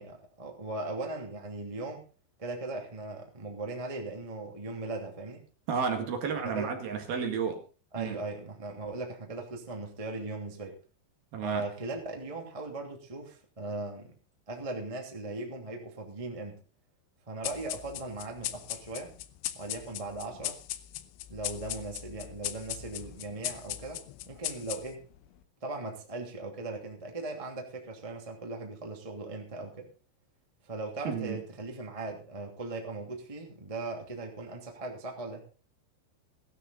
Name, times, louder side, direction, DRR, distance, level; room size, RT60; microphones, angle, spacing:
voice 1, 0.0-2.0 2.4-5.4 6.4-6.7 7.9-10.8 11.4-14.1 14.5-16.6 17.3-19.1 19.5-20.6 21.3-25.0 25.6-29.9 30.6-35.4, right 2 dB, 15° right, 2 dB, 1.3 m, -38 dB
voice 2, 5.7-7.6 8.0-8.2 11.3-11.6 31.0-31.4, right 6 dB, 60° right, 4 dB, 3.4 m, -32 dB
sound 1, 17.4-25.2, left 14 dB, 80° left, 3.2 m, -39 dB
16.5 x 12.5 x 3.9 m, 0.35 s
omnidirectional pair, 5.4 m